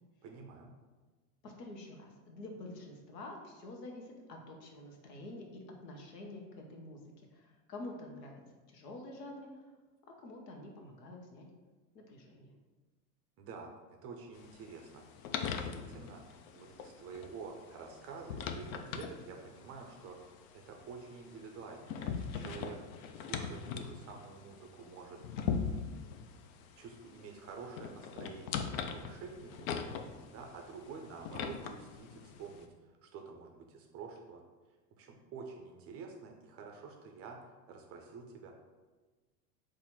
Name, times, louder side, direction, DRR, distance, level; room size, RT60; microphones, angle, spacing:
voice 1, 0.2-0.7 13.4-13.7 14.0-15.1 15.4-22.8 23.2-25.2 25.6-25.8 26.8-29.8 30.3-34.4 35.0-37.4 37.7-38.5, right 5 dB, 30° right, 2 dB, 0.5 m, -49 dB
voice 2, 1.4-8.4 8.7-9.7 10.1-11.5 11.9-12.5, left 2 dB, 75° left, 1 dB, 1.0 m, -48 dB
sound 1, 14.4-32.7, left 6 dB, 55° left, 0.5 m, -42 dB
4.2 x 2.6 x 4.1 m, 1.3 s
hypercardioid pair, 95°, 49 cm